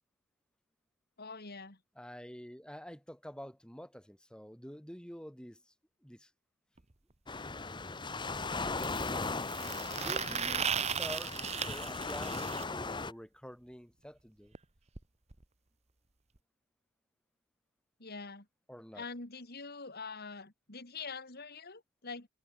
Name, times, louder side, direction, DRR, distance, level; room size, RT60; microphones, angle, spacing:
voice 1, 1.2-1.8 18.0-18.5 18.9-22.3, left 4 dB, 45° left, 2.8 m, -44 dB
voice 2, 2.0-5.6 6.0-6.3 10.0-14.5 18.7-19.0, equal, 5° left, 7.3 m, -48 dB
sound 1, 6.8-6.9 8.8-12.6 14.5-14.6 14.9-15.0 15.3-15.4 16.4-16.5, right 7 dB, 30° right, 1.1 m, -36 dB
Waves surf, 7.3-13.1, left 3 dB, 20° left, 1.1 m, -38 dB
head